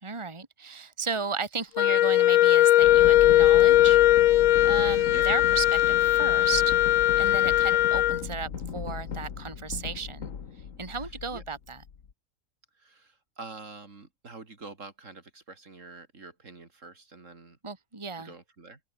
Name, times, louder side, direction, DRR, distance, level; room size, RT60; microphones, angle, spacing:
voice 1, 0.0-4.0 4.6-6.7 7.2-10.3 10.8-11.8 17.6-18.3, right 5 dB, 20° right, 2.1 m, -34 dB
Wind instrument woodwind instrument, 1.8-8.2, left 14 dB, 90° left, 1.1 m, -20 dB
sound 1, 2.8-12.1, left 7 dB, 70° left, 1.8 m, -37 dB
voice 2, 12.8-17.6 18.2-18.8, right 3 dB, 65° right, 3.3 m, -46 dB
open air
omnidirectional pair, 1.4 m